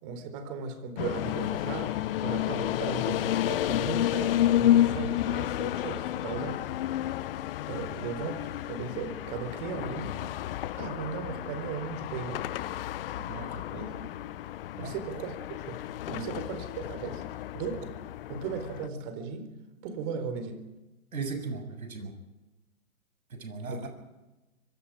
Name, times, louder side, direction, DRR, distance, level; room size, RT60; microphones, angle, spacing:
voice 1, 0.0-6.8 7.7-10.2 10.7-12.5 13.7-13.9 14.8-15.3 15.6-15.8 16.1-18.0 18.3-19.5 19.8-20.6 23.7-23.9, right 5 dB, 35° right, 9 dB, 4.5 m, -37 dB
sound 1, 1.0-18.9, left 13 dB, 40° left, 0.8 m, -31 dB
sound 2, 1.2-6.3, left 9 dB, 60° left, 2.1 m, -43 dB
voice 2, 13.2-13.7 14.8-15.0 16.2-16.3 21.1-22.1 23.3-23.9, right 4 dB, 75° right, 6 dB, 7.3 m, -37 dB
25.0 x 24.5 x 5.1 m, 1.1 s
figure-of-eight pair, 120°, 42 cm